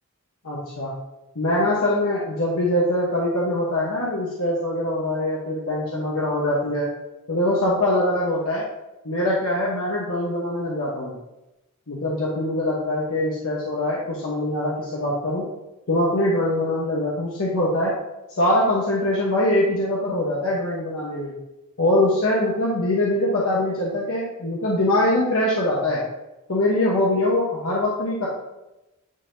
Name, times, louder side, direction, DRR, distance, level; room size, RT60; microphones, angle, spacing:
voice 1, 0.4-0.9 1.3-6.9 7.3-8.6 9.0-11.1 11.9-15.4 15.9-17.9 18.3-21.3 21.8-26.0 26.5-28.3, left 1 dB, 65° left, -5 dB, 1.1 m, -23 dB
9.6 x 4.1 x 2.7 m, 0.96 s
head